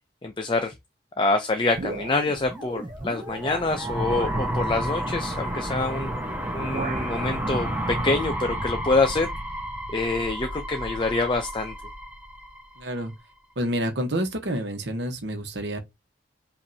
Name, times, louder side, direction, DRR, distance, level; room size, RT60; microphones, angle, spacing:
voice 1, 0.2-0.7 1.2-6.1 6.5-9.3 9.9-11.7, left 3 dB, 25° left, 0.5 m, -26 dB
sound 1, 1.7-2.5 3.4-3.5 4.0-4.5 5.9-6.2 6.4-7.2, right 3 dB, 45° right, 0.5 m, -36 dB
sound 2, 2.1-13.0, right 1 dB, 10° right, 1.1 m, -31 dB
voice 2, 12.8-13.1 13.6-15.8, right 1 dB, 65° right, 1.1 m, -28 dB
5.2 x 2.6 x 2.7 m
head